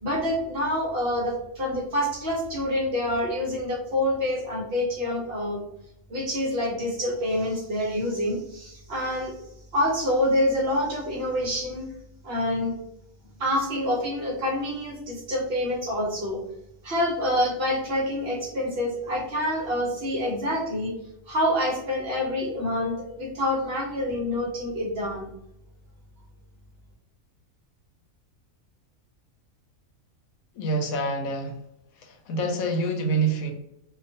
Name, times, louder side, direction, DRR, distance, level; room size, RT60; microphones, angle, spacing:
voice 1, 0.0-5.6 6.1-9.3 9.7-11.9 12.2-12.7 13.4-16.4 16.8-21.0 21.3-25.3, left 1 dB, 55° right, -2 dB, 0.8 m, -27 dB
voice 2, 30.5-31.6 31.9-33.5, right 2 dB, 90° left, 3 dB, 1.0 m, -26 dB
2.4 x 2.3 x 2.6 m, 0.80 s
omnidirectional pair, 1.4 m